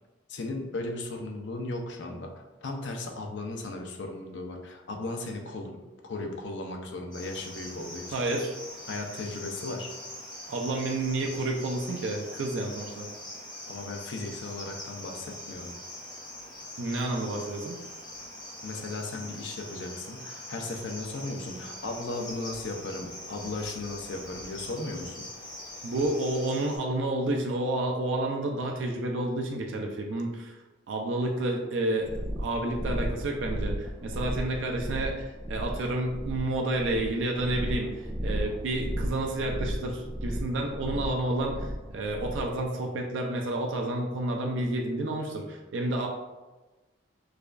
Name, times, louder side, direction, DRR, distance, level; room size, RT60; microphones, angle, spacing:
voice 1, 0.3-8.4 8.9-9.9 13.7-15.7 18.6-25.3, left 2 dB, 65° left, 3 dB, 0.5 m, -36 dB
Cricket, 7.1-26.8, left 1 dB, 20° left, 0.7 m, -43 dB
voice 2, 8.1-8.5 10.5-13.1 16.8-17.8 25.8-30.5 30.9-32.1 32.4-37.9 38.2-46.1, right 2 dB, 70° right, 1 dB, 0.4 m, -30 dB
sound 1, 32.0-42.6, equal, 5° right, 0.3 m, -34 dB
4.7 x 2.3 x 2.4 m, 1.2 s
head